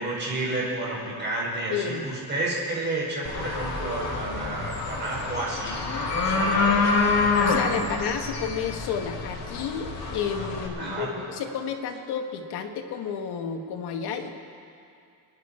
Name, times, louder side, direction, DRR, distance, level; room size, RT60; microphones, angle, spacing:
voice 1, 0.0-5.8 6.2-7.1 10.8-11.1, right 2 dB, 30° right, -4 dB, 4.9 m, -31 dB
voice 2, 1.7-2.0 7.4-14.3, left 7 dB, 90° left, 5 dB, 1.5 m, -31 dB
sound 1, 3.2-10.7, left 4 dB, 45° left, 2.4 m, -27 dB
26.0 x 10.5 x 4.3 m, 2.4 s
cardioid pair, 130°, 38 cm